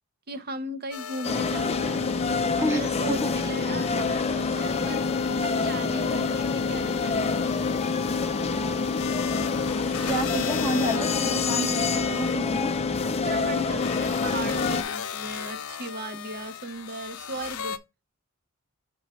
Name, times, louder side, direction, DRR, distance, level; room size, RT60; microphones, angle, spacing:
voice 1, 0.3-2.1 2.6-5.0 5.4-7.6 13.1-17.8, right 2 dB, 45° right, 0.7 m, -37 dB
sound 1, 0.9-17.8, left 7 dB, 75° left, 0.6 m, -37 dB
sound 2, 1.2-14.8, left 4 dB, 30° left, 0.5 m, -26 dB
voice 2, 2.6-3.3 4.4-4.5 5.2-5.4 10.1-12.8, right 1 dB, 10° right, 1.0 m, -31 dB
6.1 x 3.1 x 5.4 m
head